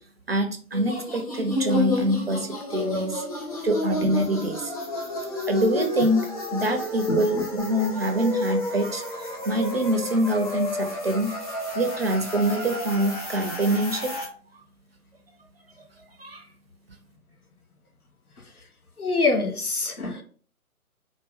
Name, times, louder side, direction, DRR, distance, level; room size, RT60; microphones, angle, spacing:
voice 1, 0.3-3.2 3.6-4.7 5.5-11.3 11.7-14.1 16.2-16.4, right 1 dB, 45° right, 5 dB, 0.7 m, -25 dB
sound 1, 0.7-14.3, left 1 dB, 25° left, 0.9 m, -31 dB
voice 2, 7.1-7.4 19.0-20.2, left 3 dB, 75° left, 2 dB, 1.3 m, -25 dB
4.4 x 2.4 x 3.6 m, 0.42 s
figure-of-eight pair, 145°, 45 cm